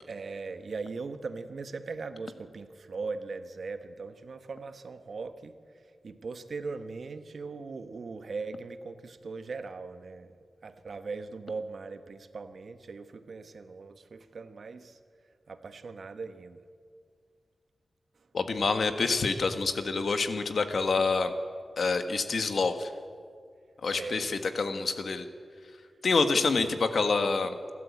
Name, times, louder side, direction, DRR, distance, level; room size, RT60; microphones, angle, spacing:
voice 1, 0.1-5.6 6.0-10.4 10.6-15.0 15.5-16.6 23.9-24.4 26.4-26.7, right 4 dB, 65° right, 10 dB, 1.2 m, -39 dB
voice 2, 18.3-21.3 21.8-22.9 23.8-25.3 26.0-27.6, left 4 dB, 65° left, 9 dB, 1.5 m, -27 dB
28.0 x 12.5 x 8.5 m, 2.1 s
wide cardioid pair, 105°, 0 cm